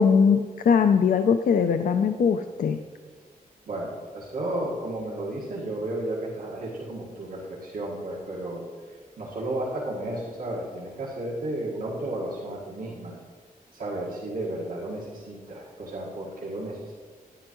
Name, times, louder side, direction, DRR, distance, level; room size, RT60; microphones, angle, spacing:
voice 1, 0.0-2.8, left 6 dB, 70° left, 8 dB, 0.4 m, -21 dB
voice 2, 3.7-13.1 13.7-16.9, right 1 dB, 75° right, -6 dB, 1.7 m, -33 dB
11.0 x 10.5 x 3.1 m, 1.6 s
wide cardioid pair, 175°, 15 cm